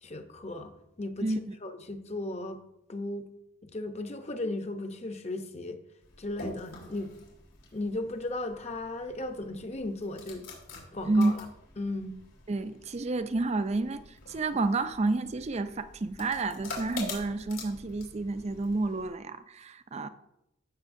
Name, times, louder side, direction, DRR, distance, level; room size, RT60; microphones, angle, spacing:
voice 1, 0.0-1.3 1.6-2.6 2.9-3.3 3.6-5.8 6.2-7.2 7.7-10.5 10.9-11.5 11.8-12.2, left 2 dB, 35° left, 0.8 m, -36 dB
voice 2, 1.2-1.5 11.1-11.3 12.5-20.1, right 2 dB, 35° right, 0.5 m, -30 dB
sound 1, 6.0-19.1, left 3 dB, 80° left, 3.4 m, -46 dB
15.5 x 6.5 x 2.6 m
head